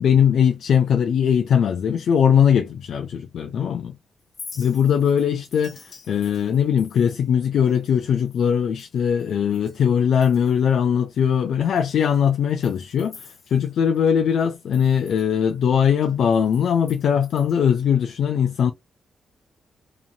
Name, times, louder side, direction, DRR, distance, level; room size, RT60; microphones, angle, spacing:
voice 1, 0.0-4.0 4.6-18.7, left 8 dB, 75° left, 0.4 m, -20 dB
Chink clink, 4.2-9.9 10.1-10.7 11.2-11.3 11.8-14.1 14.4-17.9, left 4 dB, 45° left, 0.8 m, -47 dB
3.0 x 2.6 x 2.3 m
cardioid pair, 125°, 0 cm